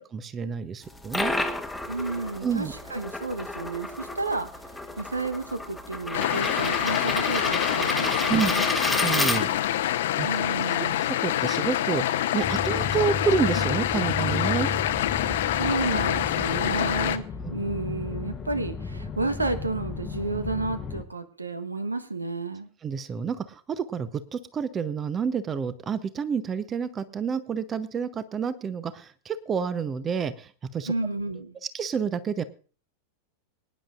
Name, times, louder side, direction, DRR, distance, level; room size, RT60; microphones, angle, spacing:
voice 1, 0.0-1.3 2.4-2.7 8.3-8.5 8.8-9.5 10.2-10.3 10.8-12.0 12.3-14.7 17.4-17.5 22.8-30.9 31.7-32.4, right 6 dB, 25° right, 15 dB, 0.8 m, -29 dB
sound 1, 0.8-9.8, left 1 dB, 5° left, 1.2 m, -31 dB
voice 2, 1.9-4.5 5.0-8.7 10.2-11.1 15.3-17.2 17.5-22.7 30.9-31.5, right 3 dB, 80° right, 11 dB, 1.1 m, -31 dB
sound 2, 6.1-17.2, left 12 dB, 55° left, 0.8 m, -26 dB
sound 3, 12.4-21.0, left 3 dB, 20° left, 0.9 m, -34 dB
24.0 x 10.5 x 2.5 m, 0.39 s
figure-of-eight pair, 90°, 0 cm